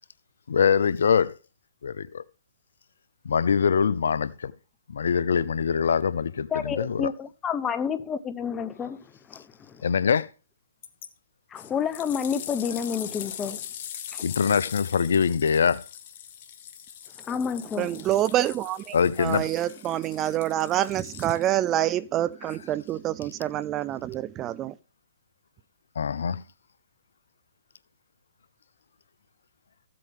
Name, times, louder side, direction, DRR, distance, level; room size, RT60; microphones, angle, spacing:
voice 1, 0.5-1.4 1.8-2.2 3.2-4.5 4.9-7.1 9.8-10.3 14.2-15.8 18.9-19.5 26.0-26.4, left 6 dB, 70° left, 0.6 m, -23 dB
voice 2, 6.5-9.8 11.5-13.6 14.1-14.2 17.3-18.1, left 7 dB, 15° left, 0.9 m, -30 dB
sound 1, 10.8-11.1 11.5-21.7 22.5-22.6, left 9 dB, 45° left, 1.3 m, -41 dB
voice 3, 17.8-24.8, right 13 dB, 25° right, 0.5 m, -27 dB
14.5 x 7.8 x 3.6 m
hypercardioid pair, 135°, 0 cm